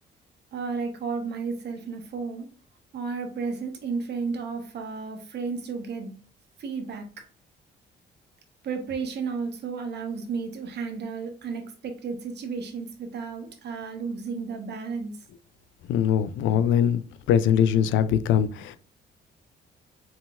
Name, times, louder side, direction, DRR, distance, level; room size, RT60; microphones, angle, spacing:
voice 1, 0.5-2.5 2.9-6.1 6.6-7.1 8.6-15.1, right 5 dB, 65° right, 1.2 m, -33 dB
voice 2, 15.9-17.0 17.3-18.8, left 9 dB, 90° left, 0.4 m, -22 dB
4.5 x 3.8 x 2.5 m
cardioid pair, 85°, 19 cm